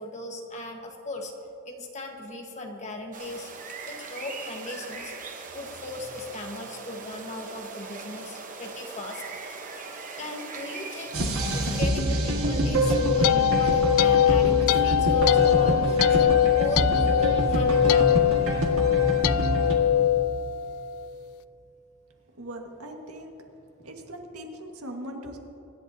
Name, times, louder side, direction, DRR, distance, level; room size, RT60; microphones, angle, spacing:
voice 1, 0.0-1.3 1.7-3.5 3.9-5.1 5.5-9.6 10.2-18.2, left 2 dB, 30° left, 2 dB, 1.3 m, -37 dB
sound 1, 3.1-11.8, right 4 dB, 35° right, 1.0 m, -40 dB
sound 2, 11.1-19.7, equal, 70° right, 1.8 m, -26 dB
sound 3, 12.7-21.1, left 10 dB, 75° left, 0.3 m, -22 dB
voice 2, 22.4-23.3 23.8-25.4, right 1 dB, 85° right, 2 dB, 1.7 m, -40 dB
24.5 x 11.0 x 2.8 m, 2.9 s
head